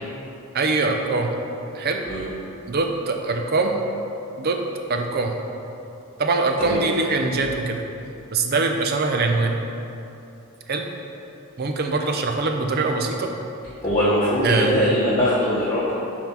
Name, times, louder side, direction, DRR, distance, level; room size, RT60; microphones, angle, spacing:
voice 1, 0.5-1.3 1.7-2.0 2.7-3.8 4.4-4.6 4.9-5.3 6.2-7.8 8.3-9.6 10.7-10.8 11.6-13.3 14.4-14.7, right 3 dB, 45° right, 4 dB, 0.5 m, -23 dB
voice 2, 13.8-15.9, left 1 dB, 20° left, -12 dB, 1.2 m, -21 dB
5.5 x 4.5 x 5.8 m, 2.8 s
head